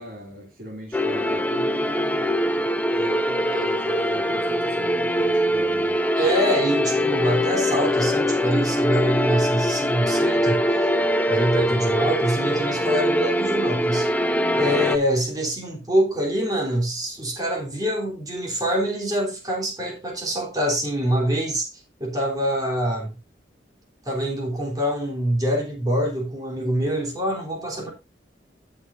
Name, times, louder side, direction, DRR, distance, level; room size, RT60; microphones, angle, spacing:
voice 1, 0.0-2.3 2.9-6.0 14.5-15.0, equal, 50° right, 2.7 m, -39 dB
sound 1, 0.9-15.0, equal, 10° left, 0.6 m, -22 dB
voice 2, 6.2-10.9 11.3-14.1 14.6-23.2 24.0-27.9, equal, 20° right, 3.3 m, -25 dB
15.5 x 6.2 x 2.6 m
head